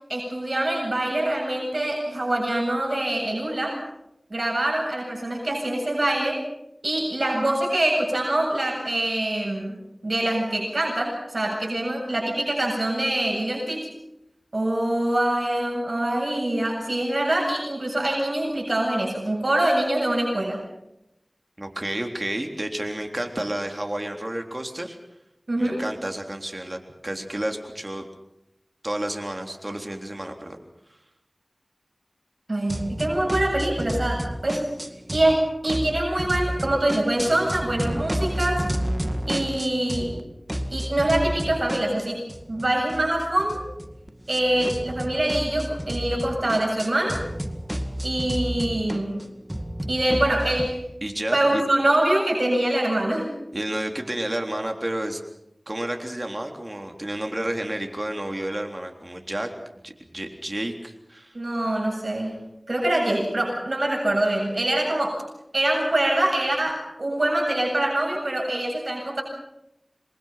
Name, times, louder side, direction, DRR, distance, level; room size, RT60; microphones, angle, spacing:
voice 1, 0.1-3.8 4.3-6.4 6.8-9.8 10.0-13.9 14.5-20.6 25.5-25.8 32.5-34.6 35.1-38.6 39.3-40.2 40.7-42.2 42.5-43.6 44.3-47.2 48.0-49.2 49.9-50.8 51.3-53.3 61.3-62.4 62.7-65.2 65.5-69.2, right 1 dB, 70° right, -1 dB, 7.7 m, -24 dB
voice 2, 21.6-25.0 25.6-28.0 28.8-30.6 51.0-51.6 53.5-55.2 55.7-59.5 59.8-61.4, right 1 dB, 35° right, 4 dB, 3.7 m, -31 dB
sound 1, 32.7-35.4 35.7-40.2 40.5-50.7, equal, 15° right, 2.1 m, -31 dB
28.0 x 22.0 x 5.9 m, 0.84 s
wide cardioid pair, 50°, 0 cm